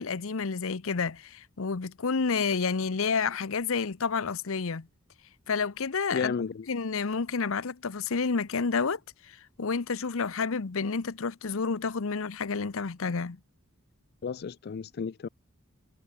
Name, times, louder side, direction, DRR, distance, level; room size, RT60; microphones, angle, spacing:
voice 1, 0.0-4.9 5.5-13.4, left 5 dB, 65° left, 0.8 m, -30 dB
voice 2, 6.1-6.7 14.2-15.3, left 6 dB, 50° left, 0.4 m, -33 dB
head